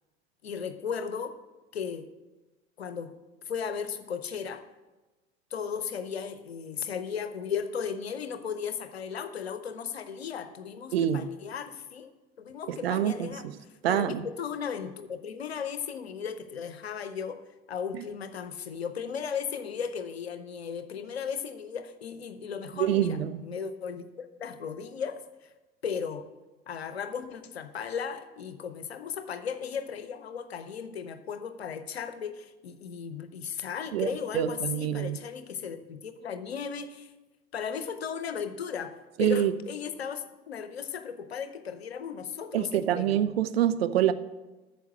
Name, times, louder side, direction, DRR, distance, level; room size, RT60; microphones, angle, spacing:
voice 1, 0.4-1.4 1.7-2.1 2.8-3.1 3.5-4.7 5.5-12.1 12.4-13.5 13.9-17.4 17.7-25.5 25.8-26.2 26.7-37.1 37.5-43.2, left 7 dB, 80° left, 0.8 m, -36 dB
voice 2, 10.9-11.2 12.7-13.3 13.8-14.2 22.8-23.4 33.9-35.2 39.2-39.5 42.5-44.1, right 11 dB, 70° right, 0.6 m, -26 dB
9.3 x 6.8 x 7.7 m
figure-of-eight pair, 60°, 31 cm